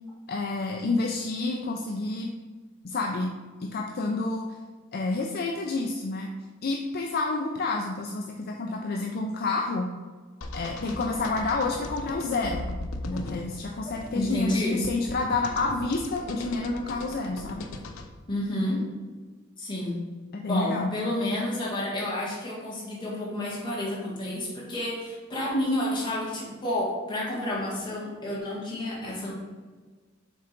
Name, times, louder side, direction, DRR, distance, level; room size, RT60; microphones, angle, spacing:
voice 1, 0.3-2.3 2.8-3.3 3.6-4.5 4.9-6.3 6.6-9.9 10.5-12.7 13.0-17.7 20.3-20.9, left 3 dB, 50° left, 1 dB, 0.5 m, -29 dB
sound 1, 10.4-18.1, left 2 dB, 90° left, 0.6 m, -38 dB
voice 2, 13.8-14.8 18.3-18.9 19.6-19.9 20.4-29.3, left 1 dB, 25° left, -6 dB, 2.0 m, -30 dB
6.8 x 3.8 x 4.5 m, 1.4 s
head